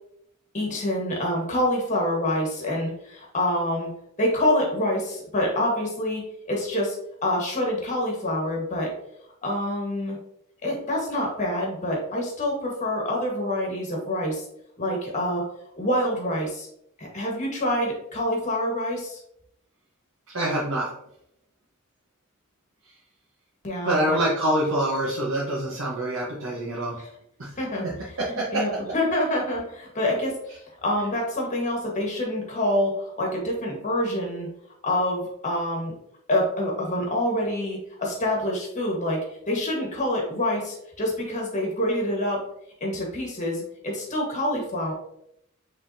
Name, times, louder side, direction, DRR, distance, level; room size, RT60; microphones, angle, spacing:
voice 1, 0.5-3.9 4.2-6.2 6.5-7.0 7.2-8.9 9.4-10.2 10.6-14.4 14.8-15.4 15.8-16.7 17.0-19.2 23.6-24.2 27.0-27.1 27.6-27.9 28.3-34.5 34.8-35.9 36.3-42.4 42.8-44.9, left 1 dB, 35° left, -1 dB, 1.4 m, -26 dB
voice 2, 20.3-20.9 23.8-27.0 27.4-27.5 28.2-28.6, right 1 dB, 65° right, -6 dB, 1.0 m, -25 dB
5.4 x 3.6 x 2.7 m, 0.75 s
head